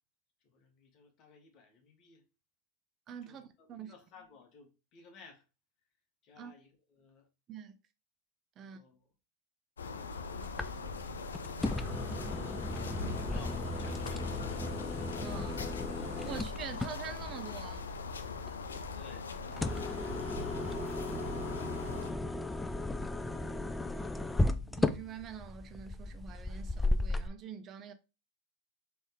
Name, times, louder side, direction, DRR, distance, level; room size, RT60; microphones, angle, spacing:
voice 1, 0.4-2.2 3.2-5.4 6.2-7.3 8.6-9.0 12.8-14.8 18.9-24.3, left 5 dB, 45° left, 1.4 m, -58 dB
voice 2, 3.1-3.9 6.4-6.5 7.5-7.8 8.6-8.8 15.2-15.7 16.2-17.9 24.6-27.9, right 7 dB, 35° right, 0.6 m, -45 dB
sound 1, 9.8-22.1, left 4 dB, 85° left, 0.5 m, -41 dB
sound 2, 10.4-27.3, left 2 dB, 10° left, 0.4 m, -36 dB
4.1 x 3.4 x 3.5 m
hypercardioid pair, 100°, 0 cm